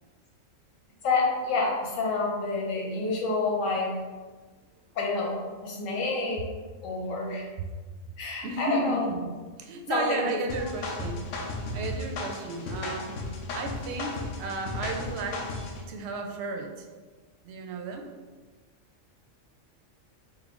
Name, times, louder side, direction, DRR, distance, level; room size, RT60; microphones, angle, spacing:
voice 1, 1.0-3.9 4.9-6.4 6.8-7.4 8.2-9.1 9.9-10.4, left 3 dB, 90° left, -2 dB, 1.2 m, -28 dB
voice 2, 8.4-11.3 11.7-13.1 13.5-15.4 15.9-16.9 17.4-18.1, right 3 dB, 65° right, 3 dB, 0.7 m, -33 dB
sound 1, 10.5-15.8, left 2 dB, 65° left, 0.8 m, -35 dB
4.4 x 2.1 x 3.5 m, 1.3 s
omnidirectional pair, 1.3 m